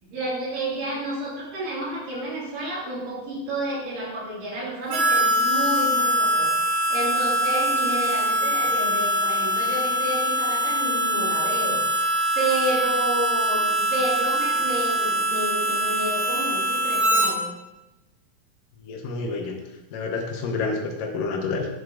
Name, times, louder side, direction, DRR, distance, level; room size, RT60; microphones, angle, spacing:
voice 1, 0.0-12.1 12.4-17.5, right 1 dB, 70° right, -6 dB, 4.1 m, -30 dB
Harmonica, 4.9-17.3, equal, 90° right, 2.8 m, -23 dB
voice 2, 18.8-19.5 19.9-21.7, left 4 dB, 75° left, 2 dB, 2.5 m, -28 dB
7.9 x 7.2 x 3.6 m, 1.0 s
omnidirectional pair, 4.0 m